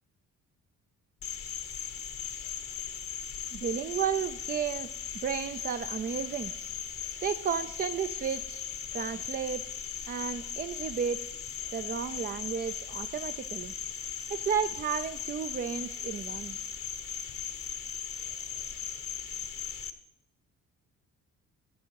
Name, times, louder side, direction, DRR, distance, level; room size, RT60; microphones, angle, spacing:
Cricket, 1.2-19.9, left 8 dB, 50° left, 0.9 m, -38 dB
voice 1, 3.5-4.9 5.2-6.5 7.2-8.6 8.9-9.6 10.1-11.2 11.7-13.7 14.3-16.6, right 7 dB, 30° right, 10 dB, 0.4 m, -33 dB
10.0 x 7.4 x 4.6 m, 0.81 s
cardioid pair, 90°, 30 cm